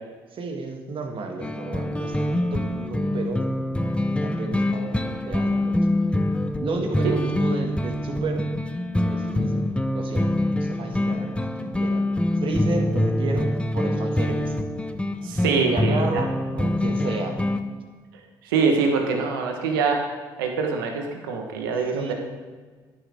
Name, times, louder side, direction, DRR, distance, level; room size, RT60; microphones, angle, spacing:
voice 1, 0.3-3.4 4.2-5.8 6.6-8.4 9.0-9.6 9.9-10.3 10.6-12.1 12.4-14.6 15.6-17.4 21.9-22.1, right 3 dB, 50° right, 3 dB, 1.8 m, -32 dB
sound 1, 1.4-17.6, left 1 dB, 10° left, 0.8 m, -25 dB
voice 2, 15.2-16.2 18.4-20.1 20.4-22.1, right 5 dB, 90° right, 3 dB, 1.2 m, -24 dB
11.0 x 9.6 x 3.5 m, 1.4 s
hypercardioid pair, 55°, 11 cm